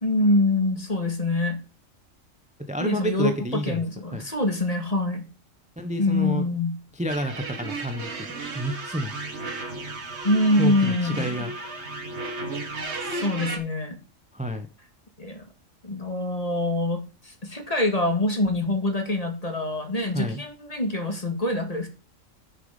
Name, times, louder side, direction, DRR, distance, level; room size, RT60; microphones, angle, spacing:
voice 1, 0.0-1.6 2.8-5.3 6.0-6.8 10.2-11.5 13.1-14.0 15.2-15.4 15.8-21.9, left 2 dB, 30° left, 5 dB, 2.1 m, -25 dB
voice 2, 2.7-3.8 4.1-4.2 5.8-6.4 6.9-8.3 8.5-9.1 10.6-11.5 14.3-14.7 20.1-20.4, equal, 5° right, 7 dB, 0.9 m, -29 dB
sound 1, 7.1-13.6, right 3 dB, 60° right, 2.0 m, -34 dB
9.4 x 6.9 x 5.3 m, 0.33 s
omnidirectional pair, 1.3 m